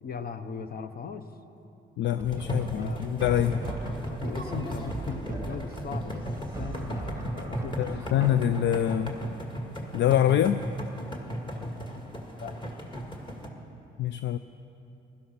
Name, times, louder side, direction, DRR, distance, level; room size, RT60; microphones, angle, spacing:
voice 1, 0.0-1.3 2.4-3.0 3.4-6.2 6.6-8.3 11.6-11.7 12.4-12.5, left 6 dB, 50° left, 10 dB, 0.9 m, -39 dB
voice 2, 2.0-3.6 7.8-9.2 9.9-10.6 14.0-14.4, left 11 dB, 65° left, 12 dB, 0.4 m, -25 dB
sound 1, 2.2-13.5, equal, 25° left, 1.9 m, -36 dB
sound 2, 2.2-9.8, right 3 dB, 15° right, 0.8 m, -40 dB
16.0 x 12.0 x 5.7 m, 2.9 s
cardioid pair, 90°, 20 cm